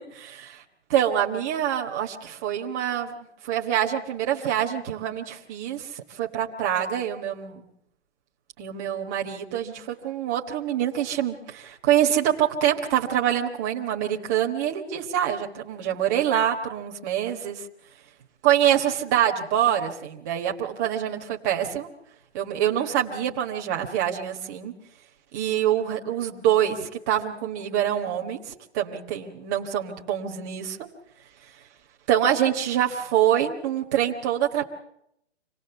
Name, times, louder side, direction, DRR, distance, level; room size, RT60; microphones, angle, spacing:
voice 1, 0.1-0.6 0.9-3.1 3.4-7.6 8.6-17.6 18.4-21.9 22.3-24.7 25.3-30.8 32.1-34.6, right 10 dB, 15° right, 0 dB, 1.3 m, -25 dB
26.0 x 18.5 x 7.0 m, 0.79 s
hypercardioid pair, 170°, 34 cm